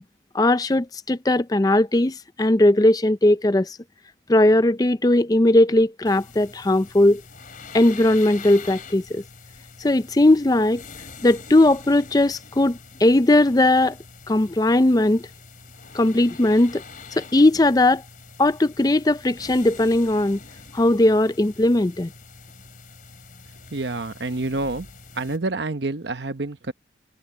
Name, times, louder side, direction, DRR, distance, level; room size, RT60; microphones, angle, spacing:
voice 1, 0.3-3.8 4.3-7.2 7.7-9.2 9.8-10.8 11.2-14.0 14.3-15.2 15.9-16.8 17.2-18.0 18.4-20.4 20.7-22.1, left 1 dB, 20° left, 0.5 m, -18 dB
sound 1, 6.0-25.4, left 4 dB, 50° left, 3.6 m, -44 dB
voice 2, 23.7-24.9 25.1-26.7, right 2 dB, 75° right, 1.1 m, -28 dB
head